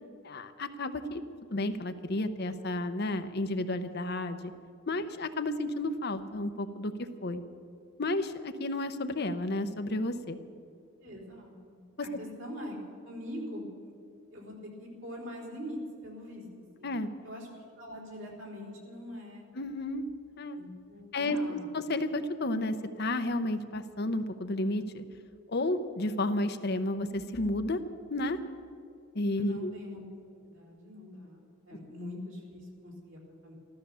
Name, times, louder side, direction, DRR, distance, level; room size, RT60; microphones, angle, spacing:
voice 1, 0.2-1.2 1.5-4.4 4.9-7.4 8.0-10.4 16.8-17.1 19.5-20.0 20.4-20.6 21.1-25.0 25.5-27.8 28.1-28.4 29.1-29.7, left 1 dB, 55° left, 9 dB, 0.8 m, -32 dB
voice 2, 11.0-12.8 13.0-13.9 14.3-16.9 17.2-19.4 20.5-21.6 29.3-30.0 30.3-33.5, left 1 dB, 75° right, -2 dB, 4.0 m, -43 dB
14.0 x 13.5 x 6.9 m, 2.4 s
head